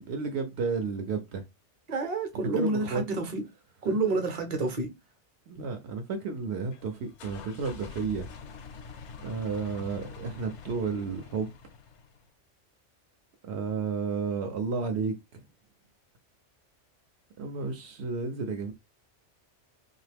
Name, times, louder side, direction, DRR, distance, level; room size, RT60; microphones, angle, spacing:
voice 1, 0.0-1.4 2.5-3.0 3.9-4.0 5.5-8.3 9.2-11.5 13.4-15.4 17.4-18.7, right 5 dB, 70° right, 0.8 m, -32 dB
voice 2, 1.9-3.4 3.8-4.9, right 3 dB, 40° right, 0.8 m, -29 dB
sound 1, 6.7-12.3, left 5 dB, 80° left, 0.9 m, -45 dB
2.8 x 2.4 x 3.3 m
omnidirectional pair, 1.2 m